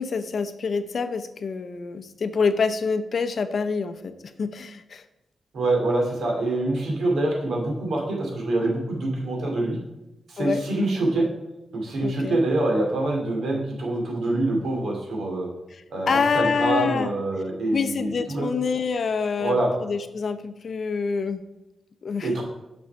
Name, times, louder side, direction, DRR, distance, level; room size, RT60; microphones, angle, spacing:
voice 1, 0.0-5.0 10.4-10.7 12.0-12.4 15.7-17.1 17.7-21.4 22.0-22.3, left 5 dB, 55° left, 11 dB, 0.7 m, -26 dB
voice 2, 5.5-9.8 10.3-11.3 11.7-15.5 15.9-18.5 19.4-19.7 22.2-22.4, right 2 dB, 80° right, 0 dB, 2.6 m, -25 dB
6.9 x 6.2 x 5.7 m, 0.95 s
wide cardioid pair, 115°, 0 cm